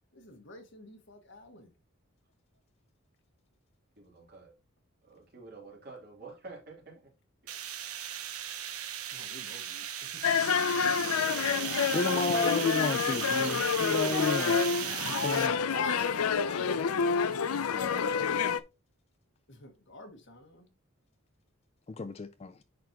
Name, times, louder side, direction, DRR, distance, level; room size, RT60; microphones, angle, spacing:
voice 1, 0.1-1.7 9.1-9.8 10.3-10.4 11.6-12.7 14.8-16.9 19.5-20.7, left 3 dB, 55° left, 1.6 m, -44 dB
voice 2, 4.0-4.5 5.0-7.1 7.4-7.8 11.7-12.2, right 3 dB, 45° right, 3.2 m, -50 dB
sound 1, 7.5-15.5, right 10 dB, 85° right, 1.1 m, -37 dB
sound 2, 10.2-18.6, left 6 dB, 85° left, 0.5 m, -28 dB
voice 3, 11.8-14.6 15.2-15.5 17.7-18.1 21.9-22.5, left 3 dB, 30° left, 0.3 m, -32 dB
10.0 x 4.4 x 3.0 m
head